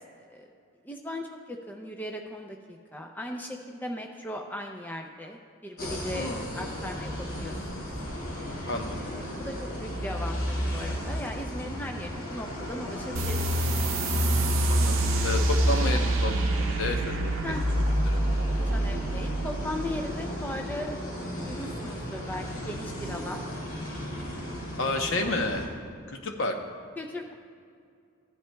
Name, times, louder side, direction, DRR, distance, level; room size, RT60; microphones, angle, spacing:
voice 1, 0.2-0.5 0.8-7.9 8.9-9.5 9.8-13.7 17.4-17.6 18.7-20.9 21.2-23.4 27.0-27.3, left 1 dB, 10° left, 2 dB, 0.4 m, -38 dB
sound 1, 5.8-25.7, equal, 85° left, 2.1 m, -35 dB
voice 2, 6.1-6.5 8.7-9.0 14.7-17.4 18.0-18.2 24.8-25.6 26.1-26.6, left 2 dB, 65° left, 4 dB, 0.9 m, -31 dB
sound 2, 13.2-20.3, right 1 dB, 65° right, 0.7 m, -26 dB
14.5 x 10.5 x 2.3 m, 2.3 s
head